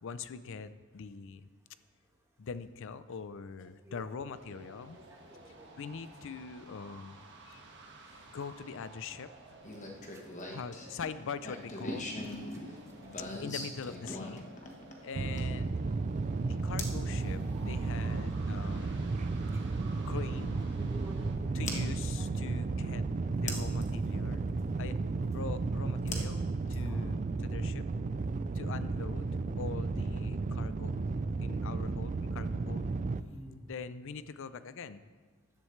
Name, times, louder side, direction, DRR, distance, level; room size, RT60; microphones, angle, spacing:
voice 1, 0.0-1.5 2.4-5.0 5.8-7.2 7.5-7.6 8.1-9.6 10.5-12.1 13.4-14.5 15.0-15.7 16.4-19.2 20.0-20.7 21.5-23.0 23.3-24.5 24.8-25.0 25.3-27.9 28.5-31.0 31.4-32.9 33.7-35.0, left 5 dB, 60° left, 14 dB, 0.5 m, -43 dB
voice 2, 3.6-4.8 5.1-5.9 12.5-13.4 17.7-17.9 19.5-19.6 20.7-21.8 22.1-23.7 26.7-27.0 33.3-33.6, equal, 15° right, -1 dB, 1.7 m, -54 dB
sound 1, 4.3-21.4, right 2 dB, 55° right, 1.5 m, -54 dB
sound 2, 9.6-15.6 16.8-17.0 18.9-19.0 21.7-21.8 23.5-23.9 26.1-27.1, left 2 dB, 35° left, 1.2 m, -41 dB
sound 3, 15.1-33.2, right 3 dB, 35° right, 0.4 m, -33 dB
13.5 x 11.0 x 3.2 m, 1.4 s
head